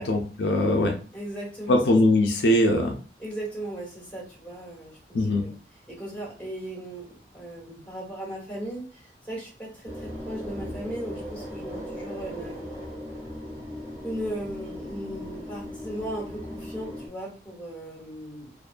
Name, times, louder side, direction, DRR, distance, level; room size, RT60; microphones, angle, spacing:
voice 1, 0.0-0.9 1.7-2.9 5.1-5.4, left 1 dB, 75° left, 3 dB, 0.5 m, -21 dB
voice 2, 1.1-1.8 3.2-5.6 5.9-12.6 14.0-18.5, right 1 dB, 10° left, -5 dB, 1.1 m, -37 dB
sound 1, 9.8-17.1, equal, 15° right, 0.7 m, -38 dB
2.5 x 2.2 x 2.4 m, 0.36 s
head